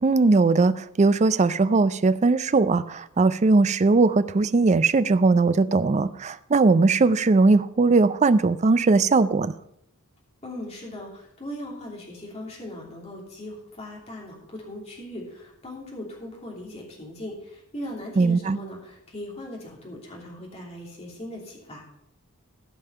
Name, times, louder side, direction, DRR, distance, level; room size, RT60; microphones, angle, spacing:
voice 1, 0.0-9.5 18.2-18.6, right 3 dB, 30° right, 15 dB, 0.4 m, -19 dB
voice 2, 10.4-21.8, left 1 dB, 30° left, -2 dB, 2.9 m, -39 dB
14.0 x 5.5 x 5.7 m, 0.76 s
head